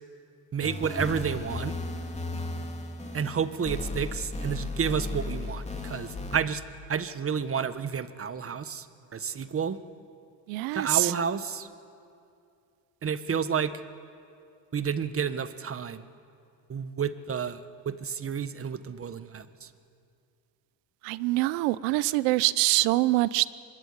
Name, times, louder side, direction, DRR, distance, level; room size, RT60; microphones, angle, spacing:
voice 1, 0.5-1.7 3.1-6.6 6.9-8.9 9.1-9.8 10.7-11.7 13.0-13.8 14.7-16.1 16.7-17.6 17.8-19.7, right 7 dB, 30° right, 12 dB, 1.3 m, -30 dB
sound 1, 0.6-6.4, left 2 dB, 15° left, 2.9 m, -35 dB
voice 2, 10.5-11.1 21.0-23.5, right 20 dB, 80° right, 18 dB, 0.9 m, -24 dB
24.0 x 21.5 x 9.7 m, 2.5 s
supercardioid pair, 95°, 47 cm